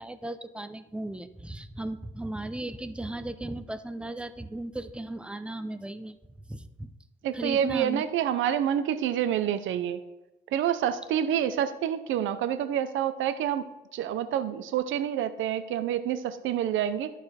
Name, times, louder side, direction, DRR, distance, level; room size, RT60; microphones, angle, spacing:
voice 1, 0.0-6.2 6.5-6.9 7.3-8.0, right 1 dB, 5° right, 10 dB, 0.6 m, -36 dB
voice 2, 7.2-10.0 10.5-17.1, right 10 dB, 80° right, 11 dB, 0.6 m, -28 dB
11.5 x 4.9 x 4.2 m, 1.0 s
cardioid pair, 90°, 20 cm